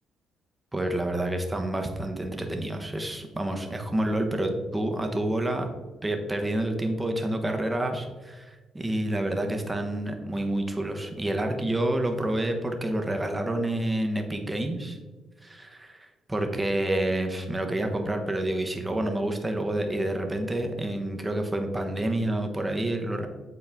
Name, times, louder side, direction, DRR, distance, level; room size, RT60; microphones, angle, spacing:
voice 1, 0.7-5.7 6.0-15.0 15.4-23.3, right 1 dB, 15° right, 4 dB, 1.0 m, -28 dB
8.2 x 4.2 x 3.5 m, 1.3 s
cardioid pair, 90°, 0 cm